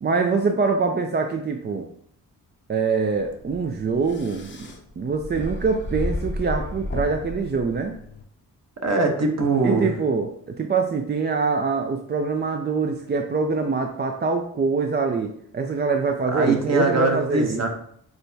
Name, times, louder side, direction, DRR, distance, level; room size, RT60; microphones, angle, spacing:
voice 1, 0.0-1.9 2.7-8.0 9.6-17.7, right 4 dB, 30° right, 4 dB, 0.4 m, -24 dB
sound 1, 3.1-8.2, left 1 dB, 30° left, 0.7 m, -33 dB
voice 2, 8.8-9.9 16.3-17.7, right 3 dB, 45° right, 3 dB, 0.9 m, -22 dB
6.2 x 2.2 x 2.7 m, 0.64 s
cardioid pair, 55°, 37 cm